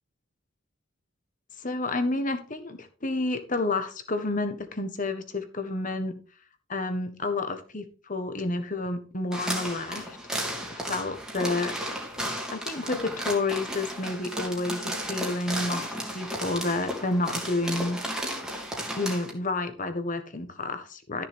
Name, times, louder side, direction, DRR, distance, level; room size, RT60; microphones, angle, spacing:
voice 1, 1.6-6.2 6.7-10.2 10.7-11.7 12.5-18.0 19.0-21.3, left 2 dB, 40° left, 8 dB, 1.4 m, -30 dB
sound 1, 9.3-19.3, equal, 5° right, 2.3 m, -34 dB
13.5 x 6.8 x 3.6 m, 0.37 s
head